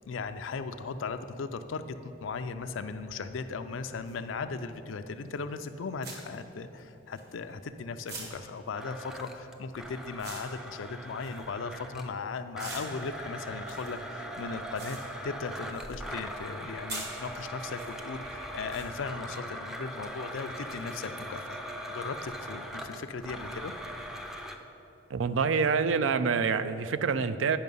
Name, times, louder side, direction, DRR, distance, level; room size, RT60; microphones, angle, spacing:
voice 1, 0.1-15.0 15.2-21.6 21.9-23.7, left 4 dB, 75° left, 10 dB, 0.4 m, -37 dB
sound 1, 4.1-4.2 5.3-5.5 6.0-7.7 8.1-12.1 12.6-16.0 16.3-17.9 18.7-18.9, right 3 dB, 55° right, 1.5 m, -45 dB
Domestic sounds home sounds, 8.8-12.1 12.6-24.6, equal, ahead, 0.5 m, -41 dB
voice 2, 25.1-27.6, right 5 dB, 75° right, 12 dB, 0.4 m, -26 dB
9.5 x 5.7 x 5.4 m, 2.9 s
head